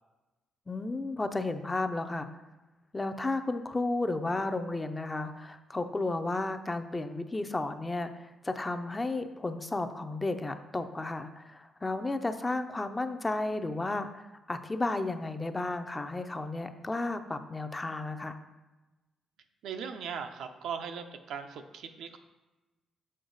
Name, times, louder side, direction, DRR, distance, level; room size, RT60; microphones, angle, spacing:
voice 1, 0.7-2.3 2.9-18.4, left 2 dB, 20° left, 8 dB, 0.5 m, -33 dB
voice 2, 19.6-22.2, right 7 dB, 85° right, 6 dB, 0.6 m, -39 dB
6.5 x 5.3 x 3.9 m, 1.1 s
cardioid pair, 115°, 0 cm